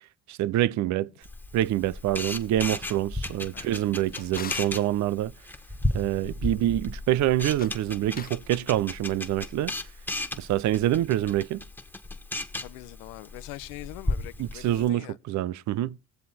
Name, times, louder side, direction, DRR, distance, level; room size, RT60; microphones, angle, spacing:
voice 1, 0.3-1.1 1.5-5.3 5.9-9.7 10.4-11.6 14.4-16.0, right 13 dB, 60° right, 0.6 m, -26 dB
Camera, 1.2-14.9, left 2 dB, 5° left, 1.6 m, -35 dB
Drawer open or close, 3.7-4.8 7.4-8.5, left 8 dB, 30° left, 0.5 m, -43 dB
voice 2, 12.6-15.2, left 18 dB, 85° left, 0.7 m, -43 dB
19.5 x 7.5 x 4.1 m
supercardioid pair, 75°, 32 cm